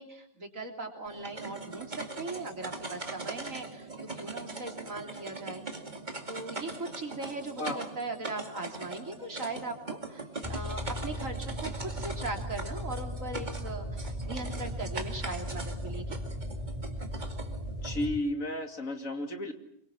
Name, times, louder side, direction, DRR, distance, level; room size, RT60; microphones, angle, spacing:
voice 1, 0.0-3.9 4.1-5.6 6.3-16.2, right 2 dB, 60° right, 3 dB, 3.8 m, -39 dB
sound 1, 1.1-18.1, right 3 dB, 30° right, 2.5 m, -41 dB
voice 2, 7.6-7.9 17.8-19.5, left 1 dB, 65° left, 5 dB, 3.0 m, -33 dB
sound 2, 10.4-18.2, equal, ahead, 1.5 m, -37 dB
26.5 x 24.0 x 7.2 m, 0.69 s
omnidirectional pair, 1.5 m